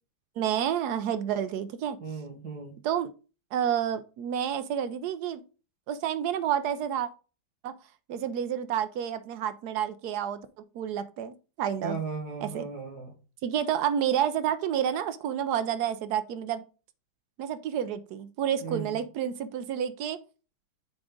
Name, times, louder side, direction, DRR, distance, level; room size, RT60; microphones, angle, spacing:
voice 1, 0.4-2.0 2.8-3.1 3.5-5.4 5.9-7.1 7.6-7.7 8.1-10.4 10.7-12.0 12.4-12.7 13.4-16.6 17.4-20.2, right 9 dB, 75° right, 12 dB, 0.9 m, -29 dB
voice 2, 2.0-2.8 11.8-13.2 18.6-19.0, right 5 dB, 55° right, 1 dB, 1.8 m, -36 dB
8.8 x 3.7 x 3.6 m, 0.33 s
omnidirectional pair, 2.2 m